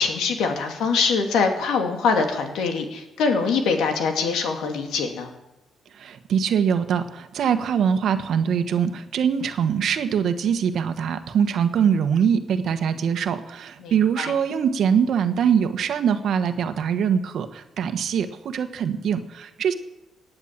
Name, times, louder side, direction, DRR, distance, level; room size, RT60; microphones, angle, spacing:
voice 1, 0.0-5.3 13.8-14.3, left 5 dB, 80° left, 4 dB, 2.6 m, -23 dB
voice 2, 5.9-19.7, right 7 dB, 65° right, 8 dB, 1.4 m, -23 dB
18.5 x 9.6 x 7.5 m, 0.97 s
cardioid pair, 90°, 0 cm